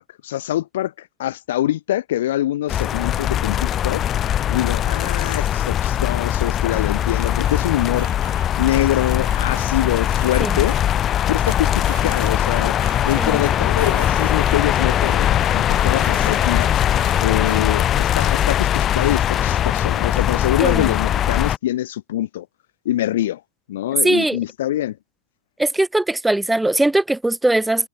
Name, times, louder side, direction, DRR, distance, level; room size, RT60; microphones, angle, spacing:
voice 1, 0.0-4.0 4.5-8.1 8.6-10.8 11.3-12.8 13.0-16.7 17.2-22.5 22.8-23.4 23.7-25.0, left 13 dB, 65° left, 1.2 m, -24 dB
sound 1, 2.7-21.6, left 11 dB, 25° left, 1.2 m, -20 dB
sound 2, 6.8-10.8 11.4-13.5 13.8-18.2, right 18 dB, 50° right, 6.1 m, -42 dB
voice 2, 20.6-20.9 24.0-24.4 25.6-27.9, right 2 dB, 5° right, 0.4 m, -20 dB
hypercardioid pair, 145°, 0 cm